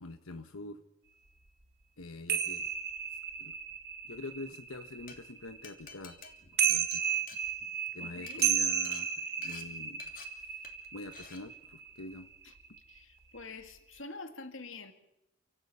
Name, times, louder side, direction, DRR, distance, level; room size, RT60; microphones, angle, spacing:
voice 1, 0.0-0.8 2.0-2.7 3.4-3.5 4.0-6.2 6.6-7.0 7.9-10.0 10.4-10.7 10.9-12.3, left 2 dB, 85° left, 8 dB, 1.1 m, -45 dB
sound 1, 2.3-5.8 6.3-12.3 12.6-13.0, right 8 dB, 50° right, 1.7 m, -33 dB
Glass, 5.1-5.2 5.6-7.9 8.2-8.4 8.8-9.0 9.4-9.6 10.0-10.2 10.6-10.9 11.1-11.4, left 7 dB, 40° left, 2.9 m, -48 dB
voice 2, 8.0-8.5 12.4-12.5 12.9-14.9, left 3 dB, 65° left, 7 dB, 2.2 m, -46 dB
30.0 x 14.0 x 8.5 m, 0.88 s
head